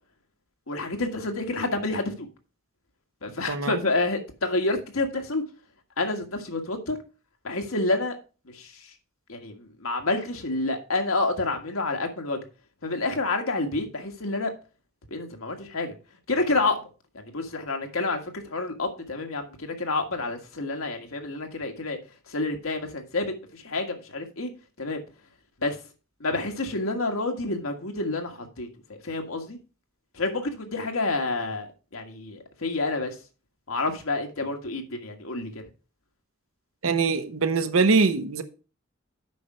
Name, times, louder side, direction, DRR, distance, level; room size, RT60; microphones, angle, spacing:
voice 1, 0.7-2.3 3.2-5.4 6.0-7.0 7.4-8.2 8.4-8.9 9.3-12.4 12.8-14.5 15.1-15.9 16.3-16.8 17.1-22.0 22.3-24.5 24.8-25.0 25.6-25.8 26.2-29.6 30.1-33.2 33.7-35.6, left 2 dB, 90° left, 1.7 m, -29 dB
voice 2, 3.5-3.8 36.8-38.4, right 4 dB, 85° right, 0.9 m, -22 dB
8.3 x 5.6 x 4.9 m
head